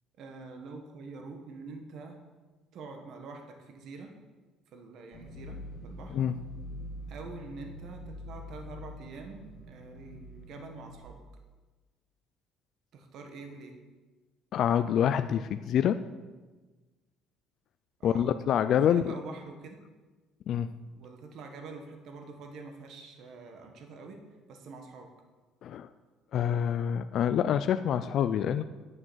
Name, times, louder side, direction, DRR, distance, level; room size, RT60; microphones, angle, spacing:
voice 1, 0.2-2.2 2.7-4.2 4.7-6.2 7.1-11.2 12.9-13.8 18.0-18.3 18.8-19.8 20.9-25.1, right 4 dB, 50° right, 4 dB, 1.3 m, -46 dB
sound 1, 5.1-11.0, left 1 dB, 70° left, 1.3 m, -44 dB
voice 2, 14.5-16.0 18.0-19.1 20.5-20.8 25.6-25.9 26.3-28.6, left 9 dB, 45° left, 10 dB, 0.3 m, -26 dB
9.9 x 7.3 x 6.2 m, 1.3 s
cardioid pair, 170°, 0 cm